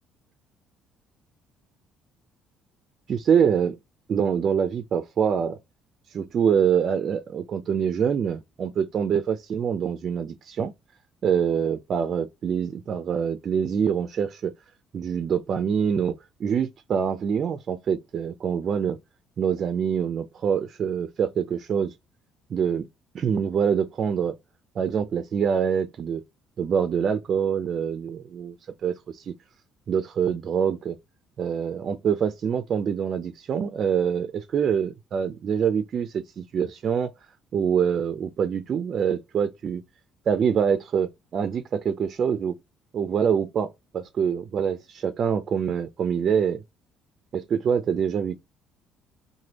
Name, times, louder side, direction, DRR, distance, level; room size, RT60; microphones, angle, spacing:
voice 1, 3.1-3.8 4.1-5.6 6.1-10.7 11.2-14.5 14.9-16.1 16.4-19.0 19.4-21.9 22.5-22.9 23.1-24.4 24.8-26.2 26.6-28.6 28.8-29.3 29.9-31.0 31.4-37.1 37.5-39.8 40.3-42.6 42.9-46.6 47.3-48.4, right 7 dB, 40° right, 0.3 m, -25 dB
3.3 x 2.1 x 2.8 m
cardioid pair, 150°, 0 cm